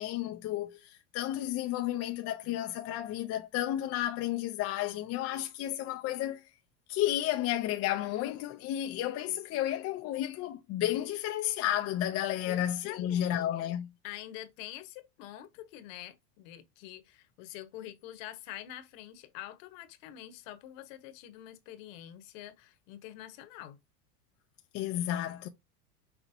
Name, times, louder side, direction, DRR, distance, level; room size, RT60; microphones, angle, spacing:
voice 1, 0.0-6.5 6.9-13.9 24.7-25.5, left 12 dB, 35° left, 0.5 m, -32 dB
voice 2, 12.4-13.8 14.0-23.8, left 13 dB, 60° left, 1.2 m, -46 dB
6.0 x 2.9 x 2.7 m
hypercardioid pair, 115°, 45 cm